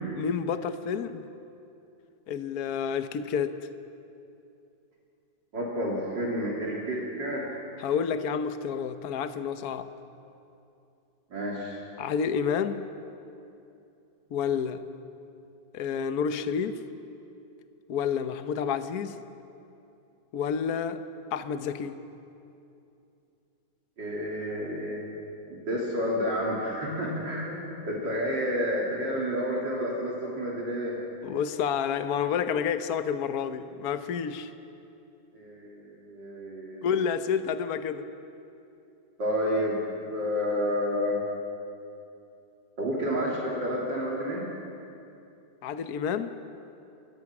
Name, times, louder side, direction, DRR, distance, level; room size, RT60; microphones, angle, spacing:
voice 1, 0.2-1.2 2.3-3.5 7.8-9.9 12.0-12.9 14.3-14.8 15.7-16.8 17.9-19.2 20.3-21.0 21.3-22.0 31.2-34.5 36.8-38.1 45.6-46.4, left 7 dB, 55° left, 10 dB, 1.4 m, -29 dB
voice 2, 5.5-7.6 11.3-11.8 24.0-25.1 25.5-31.0 35.3-36.9 39.2-41.2 42.8-44.4, equal, 65° right, -4 dB, 3.8 m, -30 dB
28.5 x 23.0 x 6.1 m, 2.7 s
omnidirectional pair, 2.1 m